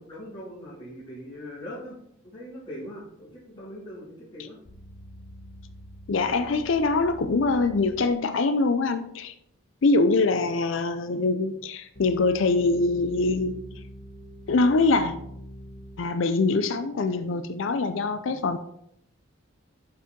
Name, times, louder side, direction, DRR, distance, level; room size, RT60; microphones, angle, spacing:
voice 1, 0.0-2.0 2.2-4.6, equal, 25° left, -9 dB, 2.4 m, -41 dB
sound 1, 4.6-8.0 11.9-16.0, equal, 45° left, 1.0 m, -44 dB
voice 2, 6.1-9.3 9.8-13.6 14.5-15.2 16.0-18.6, left 3 dB, 70° left, 10 dB, 0.5 m, -23 dB
7.9 x 5.6 x 3.7 m, 0.73 s
head